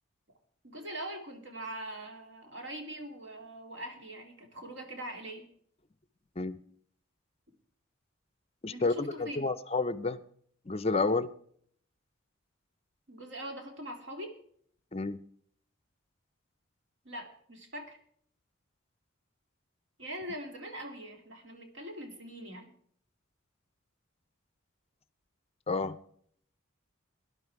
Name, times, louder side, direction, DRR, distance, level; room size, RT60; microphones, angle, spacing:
voice 1, 0.6-5.4 8.7-9.5 13.1-14.3 17.0-18.0 20.0-22.7, right 1 dB, 60° right, 4 dB, 2.7 m, -42 dB
voice 2, 8.6-10.2 10.7-11.3 14.9-15.2 25.7-26.0, left 3 dB, 30° left, 16 dB, 0.5 m, -30 dB
17.5 x 11.5 x 4.7 m, 0.62 s
head